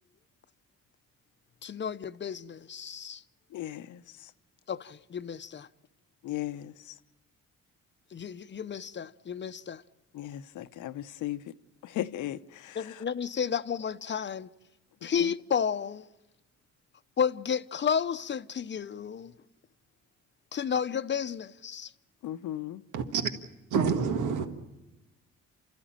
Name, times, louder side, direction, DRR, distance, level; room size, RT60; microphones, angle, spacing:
voice 1, 1.6-3.2 4.7-5.7 8.1-9.8 12.7-14.5 15.0-16.1 17.2-19.3 20.5-21.9, left 7 dB, 35° left, 0.7 m, -32 dB
voice 2, 3.5-4.3 6.2-6.9 10.1-11.4 11.8-13.0 15.2-15.3 22.2-22.8, left 13 dB, 80° left, 0.8 m, -37 dB
voice 3, 22.9-23.3 23.7-24.5, right 6 dB, 85° right, 1.7 m, -27 dB
29.5 x 14.0 x 8.9 m
cardioid pair, 90°, 30 cm